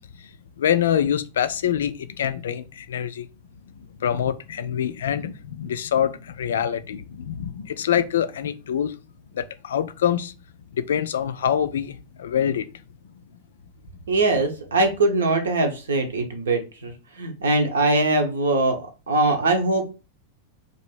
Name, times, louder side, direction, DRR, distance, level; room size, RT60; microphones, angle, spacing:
voice 1, 0.6-3.3 4.0-9.0 9.3-10.3 10.7-12.8, left 9 dB, 65° left, 0.3 m, -25 dB
voice 2, 14.1-19.9, right 2 dB, 65° right, 0.8 m, -22 dB
3.0 x 2.6 x 4.3 m
figure-of-eight pair, 90°, 0 cm